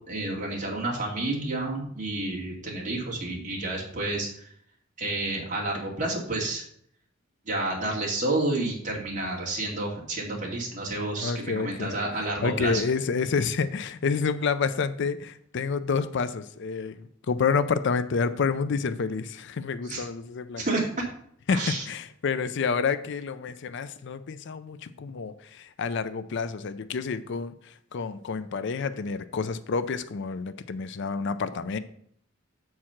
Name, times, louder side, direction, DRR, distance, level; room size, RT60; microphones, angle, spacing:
voice 1, 0.1-4.3 5.0-6.6 7.5-12.8 19.8-20.0 20.6-21.1 21.5-21.8, right 2 dB, 40° right, -3 dB, 2.3 m, -30 dB
voice 2, 11.2-11.9 12.4-20.6 21.5-31.8, left 5 dB, 60° left, 12 dB, 0.5 m, -29 dB
7.4 x 4.7 x 5.7 m, 0.66 s
head